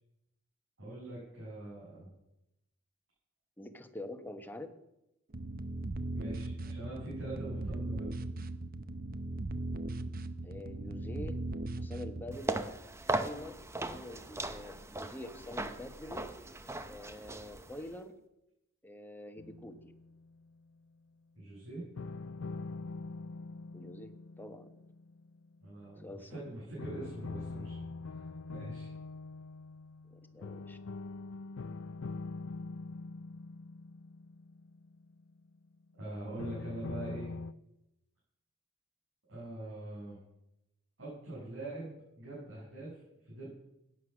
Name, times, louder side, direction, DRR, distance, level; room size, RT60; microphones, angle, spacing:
voice 1, 0.8-2.1 6.1-8.1 21.4-21.8 25.6-28.9 36.0-37.3 39.3-40.2 41.0-43.5, right 2 dB, 60° right, -8 dB, 7.5 m, -43 dB
voice 2, 3.6-4.7 10.4-11.4 11.8-12.6 13.1-16.3 16.9-18.1 18.8-19.9 23.7-24.7 26.0-26.4 30.1-30.8, left 1 dB, 10° left, 6 dB, 1.2 m, -46 dB
sound 1, 5.3-12.4, right 2 dB, 45° right, 0.8 m, -38 dB
sound 2, 12.3-17.9, right 2 dB, 15° right, 0.8 m, -38 dB
sound 3, 19.4-20.6 22.0-26.0 26.8-35.6 36.4-37.5, left 3 dB, 70° left, 0.5 m, -44 dB
17.0 x 9.7 x 6.4 m, 0.88 s
head